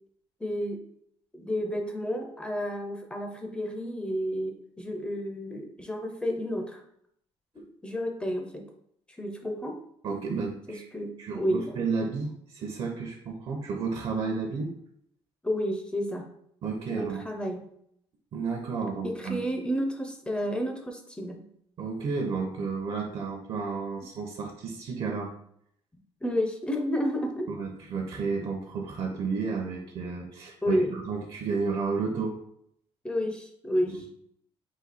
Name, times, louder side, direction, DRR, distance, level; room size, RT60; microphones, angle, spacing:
voice 1, 0.4-0.8 1.3-6.8 7.5-8.6 9.2-9.8 10.7-11.8 15.4-16.3 16.9-17.6 19.0-21.5 26.2-27.5 30.6-30.9 33.0-34.0, equal, 10° left, 3 dB, 0.5 m, -31 dB
voice 2, 10.0-10.9 11.2-14.7 16.6-17.3 18.3-19.4 21.8-25.3 27.5-32.4 33.9-34.0, right 4 dB, 55° right, 2 dB, 0.7 m, -32 dB
4.1 x 2.7 x 4.1 m, 0.70 s
cardioid pair, 150°, 11 cm